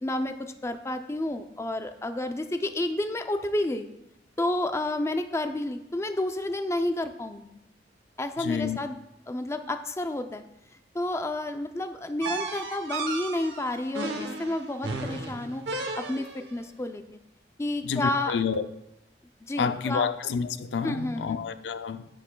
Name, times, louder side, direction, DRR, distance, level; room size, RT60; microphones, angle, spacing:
voice 1, 0.0-3.9 4.4-7.6 8.2-9.0 9.3-10.4 10.9-15.6 16.0-17.2 17.6-18.3 19.4-20.1 20.8-21.4, left 1 dB, 15° left, 0.4 m, -30 dB
voice 2, 8.4-8.8 17.8-18.7 19.6-22.1, left 6 dB, 80° left, 0.4 m, -29 dB
sound 1, 12.2-16.5, right 3 dB, 70° right, 1.0 m, -34 dB
9.9 x 8.2 x 2.2 m
head